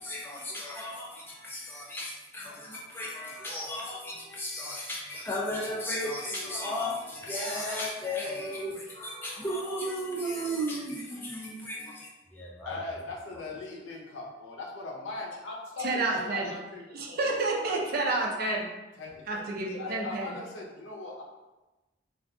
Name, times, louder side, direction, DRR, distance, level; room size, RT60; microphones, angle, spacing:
voice 1, 0.0-12.8, equal, 10° left, -6 dB, 0.6 m, -35 dB
voice 2, 12.7-17.3 17.9-18.0 19.0-21.2, left 3 dB, 80° left, -2 dB, 0.6 m, -40 dB
voice 3, 15.8-16.5 16.9-18.7 19.3-20.3, right 2 dB, 50° right, -1 dB, 0.5 m, -29 dB
2.4 x 2.3 x 3.6 m, 1.1 s
head